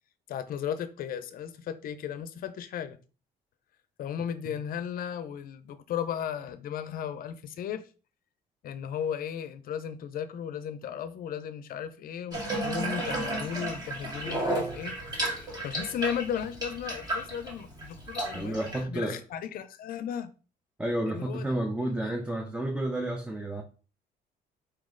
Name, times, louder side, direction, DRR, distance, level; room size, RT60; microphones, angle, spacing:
voice 1, 0.3-3.0 4.0-7.8 8.6-15.0 15.2-20.3 21.1-21.5 22.0-22.1, left 8 dB, 60° left, 0.6 m, -35 dB
Water tap faucet / Bathtub (filling or washing), 12.3-18.8, right 2 dB, 25° right, 1.8 m, -33 dB
voice 2, 18.3-19.2 20.8-23.6, right 1 dB, 5° right, 0.7 m, -31 dB
4.5 x 3.1 x 3.8 m
cardioid pair, 110°, 17 cm